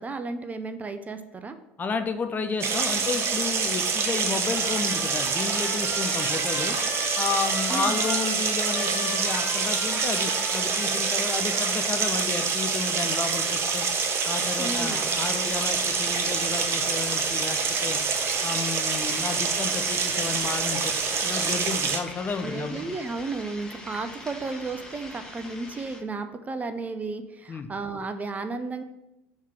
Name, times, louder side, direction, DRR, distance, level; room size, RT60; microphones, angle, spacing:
voice 1, 0.0-1.6 7.7-8.0 14.6-15.1 22.4-28.8, right 3 dB, 25° right, 9 dB, 0.5 m, -33 dB
voice 2, 1.8-6.8 7.2-13.9 14.3-18.0 18.4-20.9 21.2-22.9 27.5-27.7, left 5 dB, 30° left, 8 dB, 0.7 m, -32 dB
sound 1, 2.6-22.0, right 5 dB, 40° right, 0.9 m, -26 dB
Trumpet, 4.3-12.0, left 3 dB, 75° left, 1.7 m, -38 dB
sound 2, 14.7-26.0, left 1 dB, 10° left, 1.5 m, -43 dB
6.5 x 3.6 x 5.8 m, 0.90 s
hypercardioid pair, 70°, 6 cm